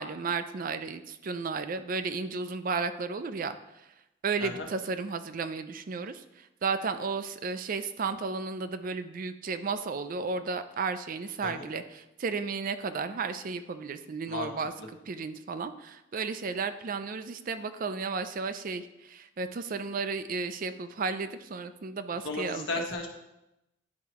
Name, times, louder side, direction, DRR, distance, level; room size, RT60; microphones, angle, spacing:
voice 1, 0.0-3.9 4.2-14.7 15.1-22.8, right 4 dB, 45° right, 10 dB, 0.4 m, -33 dB
voice 2, 22.2-23.1, left 2 dB, 85° left, 1 dB, 1.2 m, -34 dB
10.5 x 4.6 x 3.0 m, 0.92 s
head